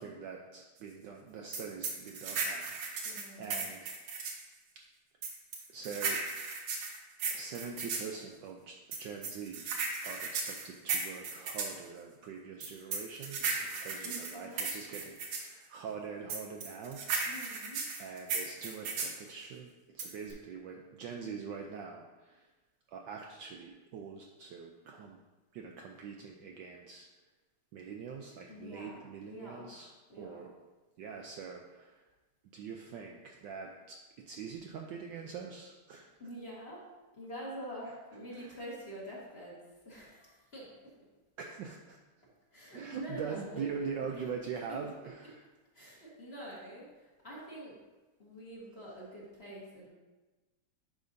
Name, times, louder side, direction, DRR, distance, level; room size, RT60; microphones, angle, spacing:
voice 1, 0.0-3.9 5.7-6.2 7.3-9.7 10.0-17.1 18.0-22.5 22.9-25.2 25.5-27.1 27.7-30.5 31.0-32.0 32.5-36.1 38.3-38.6 41.4-42.0 42.7-45.4, right 6 dB, 75° right, 1 dB, 1.1 m, -43 dB
sound 1, 1.5-4.4 5.2-8.1 8.9-11.8 12.6-15.5 16.3-19.2 20.0-20.3, right 4 dB, 90° right, 2.0 m, -35 dB
voice 2, 3.0-3.6 13.5-13.7 14.0-15.0 17.2-17.8 28.5-29.7 30.1-30.4 36.2-36.8 37.1-39.6 39.8-40.7 42.5-44.2 44.7-44.8 45.7-47.8 48.2-49.9, equal, 30° left, -6 dB, 1.6 m, -46 dB
10.5 x 5.0 x 2.6 m, 1.2 s
omnidirectional pair, 2.3 m